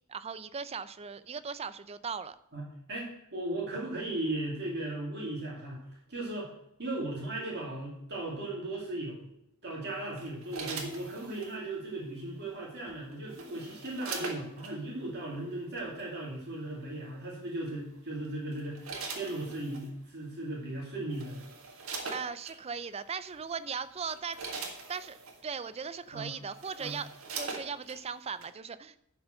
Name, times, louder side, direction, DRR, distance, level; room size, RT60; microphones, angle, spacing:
voice 1, 0.1-2.3 22.1-25.2 25.4-27.1 27.4-29.0, right 6 dB, 30° right, 14 dB, 0.4 m, -38 dB
voice 2, 2.5-5.8 6.1-6.5 6.8-9.3 9.6-21.4 26.1-26.3 26.8-27.0, right 2 dB, 50° right, -4 dB, 2.6 m, -37 dB
sound 1, 10.2-11.6 12.9-14.7 15.8-16.0 17.7-18.0 18.5-19.9 20.7-20.8 21.1-22.6 23.3-23.5 23.9-25.4 26.1-26.2 26.5-28.0 28.4-28.5, right 4 dB, 75° right, 1.7 m, -42 dB
11.5 x 4.8 x 6.4 m, 0.77 s
head